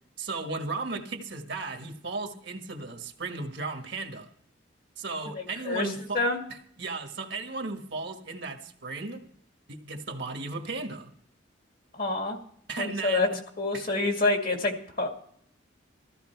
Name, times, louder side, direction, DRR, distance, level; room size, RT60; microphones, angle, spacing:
voice 1, 0.2-4.3 5.0-6.2 6.5-9.2 9.7-11.1 12.7-13.4 13.7-13.9, right 3 dB, 60° right, 5 dB, 1.4 m, -35 dB
voice 2, 5.4-6.4 11.9-12.4 12.8-13.3 13.6-15.1, left 2 dB, 45° left, 3 dB, 2.1 m, -27 dB
14.5 x 13.5 x 4.5 m, 0.64 s
head